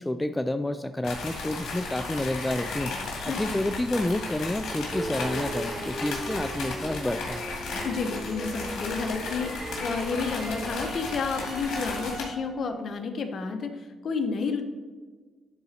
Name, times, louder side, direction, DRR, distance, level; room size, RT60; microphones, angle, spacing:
voice 1, 0.0-2.9 3.3-7.5, left 1 dB, 10° left, 9 dB, 0.3 m, -29 dB
sound 1, 1.0-12.2, left 3 dB, 75° left, 2.1 m, -35 dB
voice 2, 3.3-3.6 7.8-14.6, left 4 dB, 55° left, 6 dB, 1.0 m, -31 dB
sound 2, 4.9-10.9, right 1 dB, 15° right, 0.9 m, -38 dB
sound 3, 8.8-12.7, right 1 dB, 60° right, 2.6 m, -42 dB
11.0 x 4.0 x 4.2 m, 1.4 s
cardioid pair, 90°, 0 cm